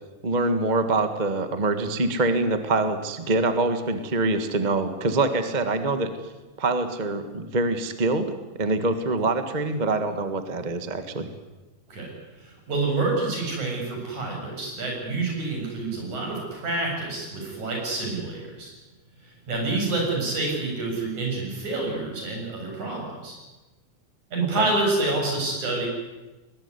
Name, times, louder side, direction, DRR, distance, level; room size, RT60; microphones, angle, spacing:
voice 1, 0.2-6.1 6.6-11.3 24.6-24.7, right 2 dB, 20° right, 9 dB, 1.2 m, -25 dB
voice 2, 12.4-18.7 19.2-23.4 24.3-25.9, right 2 dB, 75° right, 0 dB, 9.0 m, -28 dB
22.0 x 20.0 x 9.8 m, 1.1 s
omnidirectional pair, 3.4 m